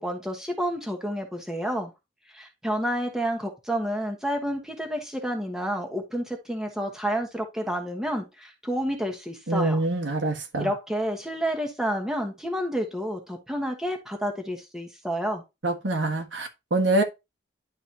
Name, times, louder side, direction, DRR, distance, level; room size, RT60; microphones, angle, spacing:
voice 1, 0.0-1.9 2.3-9.8 10.6-15.4, equal, 5° right, 1.2 m, -30 dB
voice 2, 9.5-10.7 15.6-17.0, right 2 dB, 75° right, 1.6 m, -25 dB
11.0 x 4.0 x 2.9 m
head